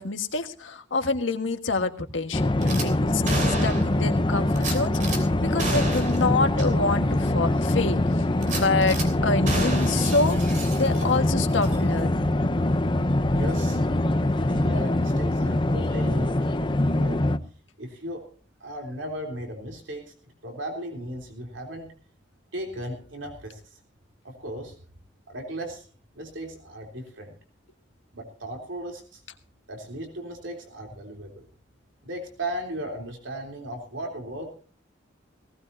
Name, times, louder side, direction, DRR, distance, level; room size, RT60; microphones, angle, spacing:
voice 1, 0.0-8.0 8.5-12.3, left 3 dB, 90° left, 7 dB, 1.6 m, -27 dB
sound 1, 2.3-17.4, left 1 dB, 25° left, 0.7 m, -23 dB
Gunshot gunfire / Glass, 2.6-2.9 3.3-4.0 4.6-5.2 5.6-6.3 6.6-6.7 7.1-7.2 8.4-9.1 9.5-11.3 11.6-11.8, right 2 dB, 40° right, 3.1 m, -31 dB
voice 2, 13.3-13.8 14.5-17.2 17.8-18.2 18.6-20.1 20.4-21.9 22.5-23.8 24.2-24.7 25.3-25.8 26.1-27.3 28.1-29.2 29.7-31.5 32.0-34.5, right 1 dB, 85° right, 2 dB, 3.4 m, -36 dB
18.5 x 17.5 x 2.7 m, 0.38 s
head